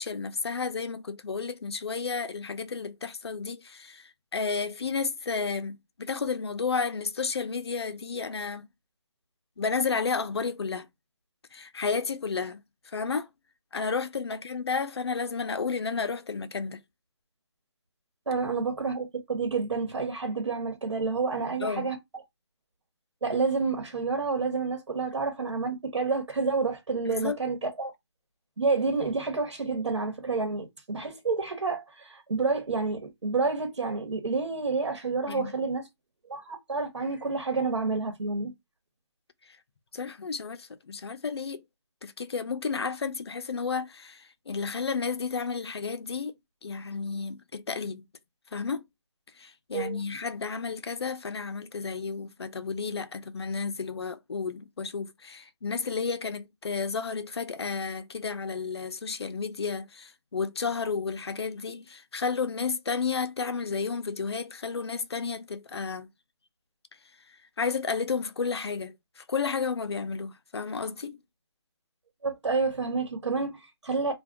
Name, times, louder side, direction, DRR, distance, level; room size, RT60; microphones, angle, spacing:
voice 1, 0.0-8.7 9.6-10.9 11.5-12.6 12.9-13.3 13.7-16.8 21.6-21.9 27.1-27.4 35.3-35.5 39.9-41.6 42.0-46.3 46.6-48.0 48.5-48.8 49.4-66.1 67.6-71.2, left 5 dB, 60° left, 0.6 m, -32 dB
voice 2, 18.3-22.0 23.2-27.9 28.6-35.9 36.3-38.5 49.7-50.0 72.2-74.1, right 4 dB, 80° right, 1.2 m, -29 dB
2.6 x 2.2 x 3.4 m
figure-of-eight pair, 170°, 15 cm